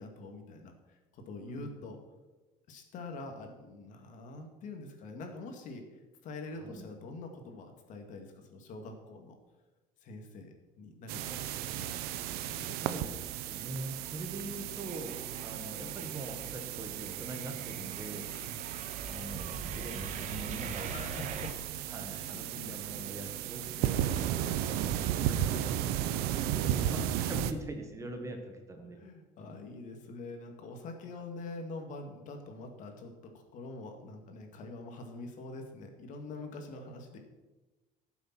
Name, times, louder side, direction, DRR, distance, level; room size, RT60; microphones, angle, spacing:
voice 1, 0.0-2.0 2.7-9.4 10.0-11.4 11.7-12.0 12.4-12.8 15.2-15.4 18.3-18.6 20.9-21.7 22.0-23.1 24.4-24.8 25.3-25.4 26.3-27.1 28.9-37.2, left 2 dB, 55° left, 4 dB, 2.2 m, -45 dB
sound 1, 11.1-27.5, right 11 dB, 90° right, 0.8 m, -35 dB
sound 2, 12.5-13.2 13.5-21.5, right 5 dB, 50° right, 1.4 m, -44 dB
voice 2, 12.6-18.3 19.1-21.0 21.9-24.9 25.2-26.0 26.3-29.0, right 2 dB, 20° right, 4 dB, 1.5 m, -43 dB
16.5 x 7.2 x 6.1 m, 1.2 s
cardioid pair, 160°, 16 cm